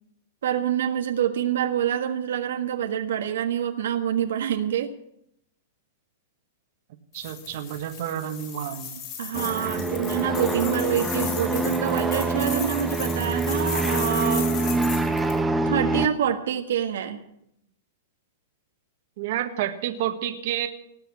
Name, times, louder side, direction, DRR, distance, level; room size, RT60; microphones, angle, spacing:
voice 1, 0.4-4.9 9.2-14.5 15.6-17.2, right 9 dB, 80° right, 5 dB, 1.5 m, -26 dB
sound 1, 7.1-15.4, left 8 dB, 35° left, 5.2 m, -36 dB
voice 2, 7.1-9.0 19.2-20.7, right 11 dB, 55° right, 6 dB, 1.5 m, -30 dB
sound 2, 9.3-16.1, right 2 dB, 5° right, 1.1 m, -25 dB
sound 3, 10.2-15.7, left 5 dB, 90° left, 3.4 m, -44 dB
19.0 x 6.9 x 8.4 m, 0.76 s
hypercardioid pair, 150°, 0 cm